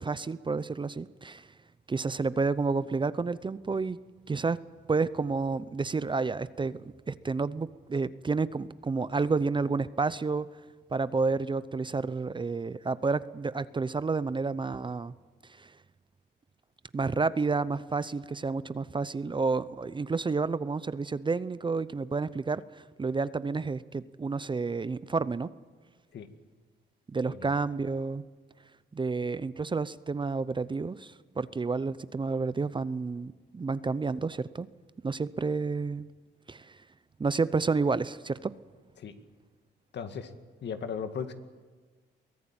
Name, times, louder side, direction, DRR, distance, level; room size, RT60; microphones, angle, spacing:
voice 1, 0.0-1.5 1.9-4.0 4.3-4.6 4.9-10.5 10.9-15.1 15.6-15.7 16.9-25.5 27.1-28.2 28.9-34.7 35.0-36.1 36.5-36.8 37.2-38.5, right 4 dB, 25° right, 16 dB, 0.7 m, -30 dB
voice 2, 39.9-40.3 40.6-41.3, left 7 dB, 60° left, 8 dB, 2.1 m, -36 dB
23.0 x 17.5 x 8.9 m, 1.4 s
cardioid pair, 90°, 20 cm